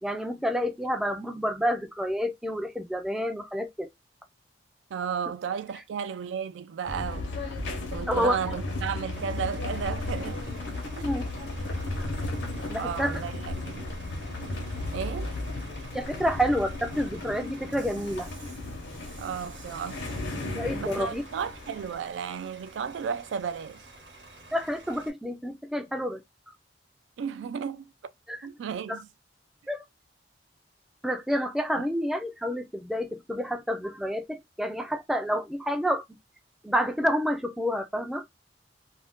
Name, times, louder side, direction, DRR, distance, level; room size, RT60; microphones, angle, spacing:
voice 1, 0.0-3.9 8.1-8.4 11.0-11.3 12.7-13.2 15.9-18.3 20.5-21.2 24.5-26.2 28.3-28.4 28.9-29.0 29.7-29.8 31.0-36.0 36.6-38.2, equal, ahead, 0.3 m, -29 dB
voice 2, 4.9-7.3 7.9-10.4 10.9-11.1 12.7-13.8 14.9-15.3 19.2-20.2 20.8-23.8 27.2-27.9 28.4-29.1 31.8-31.9, right 7 dB, 90° right, 0.3 m, -34 dB
sound 1, 6.9-21.9, left 2 dB, 75° left, 0.8 m, -35 dB
Bus / Idling, 9.1-25.1, right 2 dB, 70° right, 0.9 m, -49 dB
2.5 x 2.1 x 3.4 m
head